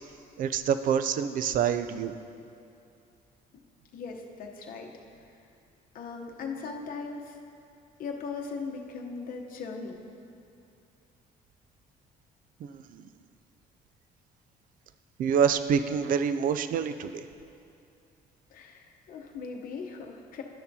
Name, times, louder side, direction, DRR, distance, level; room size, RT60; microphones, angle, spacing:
voice 1, 0.4-2.1 12.7-13.0 15.2-17.2, right 7 dB, 55° right, 11 dB, 0.4 m, -26 dB
voice 2, 3.9-4.9 5.9-7.4 8.0-10.0 18.5-20.4, left 4 dB, 55° left, 1 dB, 0.9 m, -38 dB
12.0 x 6.7 x 2.8 m, 2.5 s
cardioid pair, 110°, 17 cm